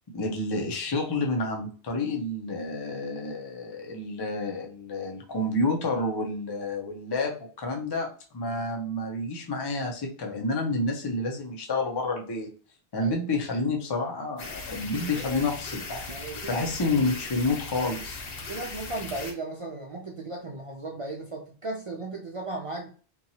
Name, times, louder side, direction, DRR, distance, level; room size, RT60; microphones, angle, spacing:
voice 1, 0.1-8.1 8.3-12.5 12.9-16.0 16.5-18.2, left 2 dB, 35° left, 1 dB, 0.4 m, -29 dB
sound 1, 14.4-19.3, left 3 dB, 65° left, 0.9 m, -38 dB
voice 2, 16.1-16.7 17.8-17.9 18.5-22.9, right 2 dB, 50° right, -1 dB, 0.4 m, -36 dB
2.9 x 2.2 x 2.7 m, 0.39 s
omnidirectional pair, 1.1 m